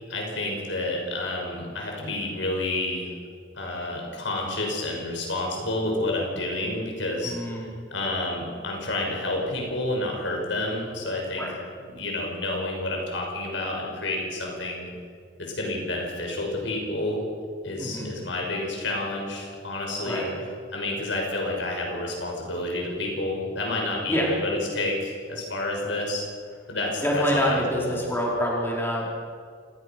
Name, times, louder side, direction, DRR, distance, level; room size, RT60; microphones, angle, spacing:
voice 1, 0.1-3.1 3.6-7.3 7.9-11.4 11.9-14.9 15.4-17.2 17.6-20.3 20.7-26.2 26.7-27.9, left 2 dB, 85° left, 0 dB, 6.2 m, -29 dB
voice 2, 7.2-7.7 11.4-11.6 17.8-18.1 20.0-20.3 24.1-24.3 27.0-29.1, equal, 10° left, -4 dB, 4.7 m, -26 dB
28.0 x 17.5 x 6.2 m, 2.1 s
head